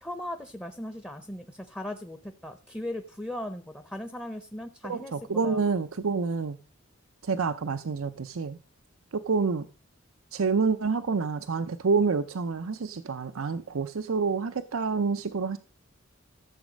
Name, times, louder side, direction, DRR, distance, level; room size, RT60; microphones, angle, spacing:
voice 1, 0.0-5.1 5.4-5.6, left 1 dB, 10° left, 0.7 m, -38 dB
voice 2, 4.8-6.6 7.2-8.6 9.1-9.7 10.3-15.6, right 4 dB, 85° right, 0.6 m, -28 dB
13.5 x 7.3 x 5.1 m
head